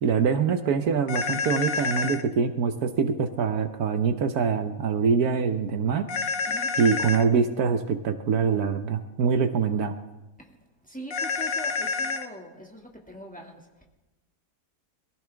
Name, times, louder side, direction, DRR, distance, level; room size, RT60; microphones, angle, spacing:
voice 1, 0.0-6.1 6.8-9.9, right 6 dB, 70° right, 8 dB, 1.3 m, -24 dB
sound 1, 1.1-2.2 6.1-7.2 11.1-12.3, left 4 dB, 60° left, 1.4 m, -28 dB
voice 2, 6.4-6.8 10.4-13.9, right 1 dB, 5° left, 0 dB, 2.0 m, -43 dB
22.5 x 15.5 x 3.4 m, 1.1 s
omnidirectional pair, 1.7 m